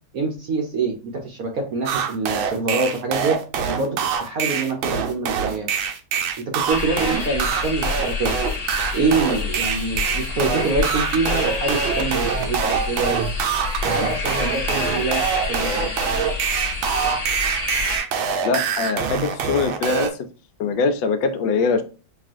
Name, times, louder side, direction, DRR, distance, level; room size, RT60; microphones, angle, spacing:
voice 1, 0.1-3.4 3.7-5.7 6.7-8.3 8.9-13.3 13.8-15.2 15.5-15.9, right 3 dB, 65° right, 0.9 m, -25 dB
sound 1, 1.9-20.1, right 7 dB, 90° right, 1.4 m, -24 dB
sound 2, 6.7-18.0, left 4 dB, 35° left, 1.2 m, -28 dB
voice 2, 18.4-20.1 20.6-21.8, left 4 dB, 80° left, 1.3 m, -22 dB
5.9 x 2.4 x 2.5 m
omnidirectional pair, 2.1 m